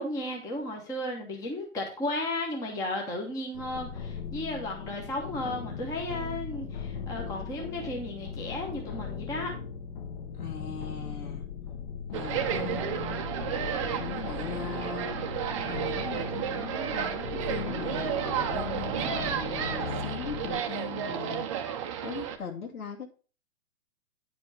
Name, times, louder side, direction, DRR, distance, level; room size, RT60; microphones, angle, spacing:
voice 1, 0.0-9.5, left 1 dB, 10° left, 1 dB, 1.0 m, -34 dB
sound 1, 3.5-20.6, left 7 dB, 40° left, 1.2 m, -38 dB
voice 2, 10.3-11.4 12.1-12.9 13.4-21.5 22.0-23.1, left 6 dB, 85° left, 0 dB, 2.7 m, -40 dB
sound 2, 12.1-22.4, right 9 dB, 20° right, 0.7 m, -32 dB
9.7 x 5.2 x 4.8 m, 0.36 s
hypercardioid pair, 155°, 44 cm